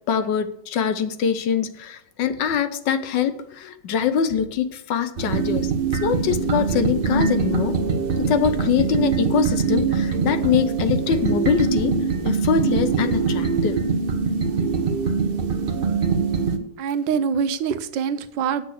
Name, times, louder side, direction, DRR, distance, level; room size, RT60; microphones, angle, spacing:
voice 1, 0.1-7.7 8.2-12.0 12.2-13.8, left 7 dB, 75° left, 11 dB, 1.4 m, -23 dB
sound 1, 5.2-16.6, right 5 dB, 50° right, 0.7 m, -23 dB
voice 2, 16.8-18.7, right 7 dB, 85° right, 12 dB, 1.4 m, -24 dB
8.4 x 6.8 x 6.4 m, 0.68 s
omnidirectional pair, 2.0 m